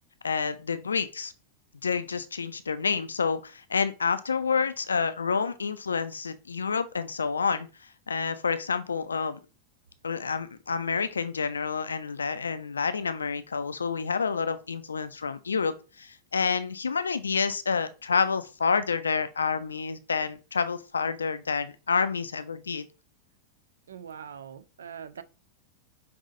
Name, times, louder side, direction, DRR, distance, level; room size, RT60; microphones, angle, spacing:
voice 1, 0.2-1.3 1.8-7.7 8.1-9.4 10.0-22.8, left 5 dB, 75° left, 0.3 m, -28 dB
voice 2, 23.9-25.2, right 7 dB, 65° right, 0.3 m, -42 dB
5.3 x 2.6 x 2.5 m
figure-of-eight pair, 90°, 0 cm